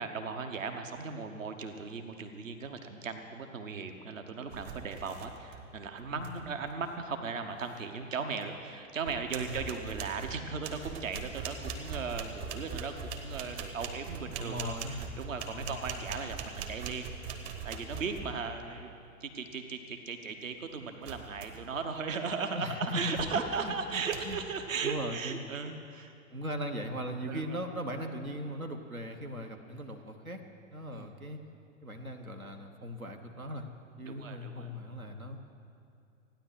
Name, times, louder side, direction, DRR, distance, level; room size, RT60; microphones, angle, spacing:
voice 1, 0.0-17.1 17.6-18.9 19.2-26.1 27.3-27.6 30.9-31.1 34.1-34.7, right 5 dB, 65° right, 7 dB, 1.2 m, -37 dB
sound 1, 4.5-5.7 6.0-6.5 8.4-8.5 9.0-18.6 21.0-21.8 22.2-22.5 23.1-23.6 24.1-24.4, right 5 dB, 50° right, 1.6 m, -41 dB
voice 2, 14.4-15.1 15.6-15.8 22.5-24.4 24.8-25.4 26.3-30.4 30.7-31.4 31.8-33.7 34.0-35.4, equal, 85° right, 5 dB, 1.2 m, -38 dB
15.0 x 10.0 x 7.9 m, 2.5 s
figure-of-eight pair, 100°, 41 cm